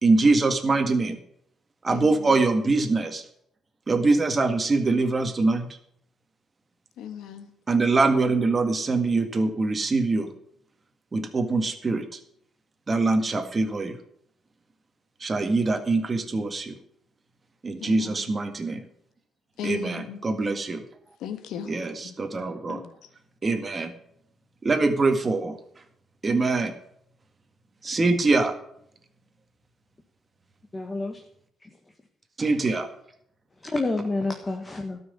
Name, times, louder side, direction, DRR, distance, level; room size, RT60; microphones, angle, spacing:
voice 1, 0.0-1.2 1.8-3.2 3.9-5.7 7.7-10.3 11.1-12.2 12.9-14.0 15.2-16.8 17.6-18.8 19.6-20.8 21.7-22.8 23.4-23.9 24.6-25.6 26.2-26.7 27.8-28.5 32.4-32.9, right 3 dB, 30° right, 1.9 m, -23 dB
voice 2, 1.9-2.4 7.0-7.5 17.8-18.3 19.6-20.2 21.2-21.8 22.0-22.1 22.7-23.1, left 9 dB, 85° left, 1.4 m, -37 dB
voice 3, 30.7-31.2 31.6-31.7 32.4-32.5 33.6-35.0, left 2 dB, 20° left, 1.5 m, -29 dB
13.0 x 6.2 x 9.6 m
cardioid pair, 90°, 0 cm